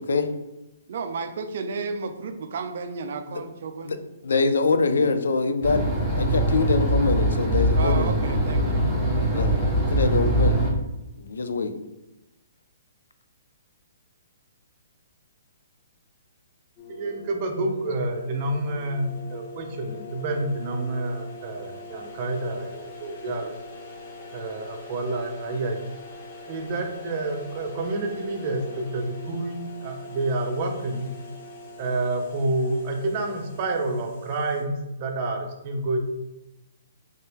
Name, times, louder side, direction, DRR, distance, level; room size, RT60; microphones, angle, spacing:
voice 1, 0.9-3.9 7.7-8.9, right 4 dB, 60° right, 8 dB, 0.4 m, -32 dB
voice 2, 4.2-5.8 6.1-8.1 9.3-9.6 9.9-10.6 11.2-11.7, left 4 dB, 75° left, 9 dB, 0.4 m, -24 dB
sound 1, 5.6-10.7, right 1 dB, 10° right, 1.1 m, -22 dB
sound 2, 16.8-34.6, left 2 dB, 45° left, 1.2 m, -42 dB
voice 3, 16.9-23.5 24.3-25.8 26.5-31.1 31.8-36.0, right 2 dB, 40° right, 3 dB, 0.8 m, -28 dB
3.5 x 2.8 x 3.5 m, 0.96 s
hypercardioid pair, 135°, 0 cm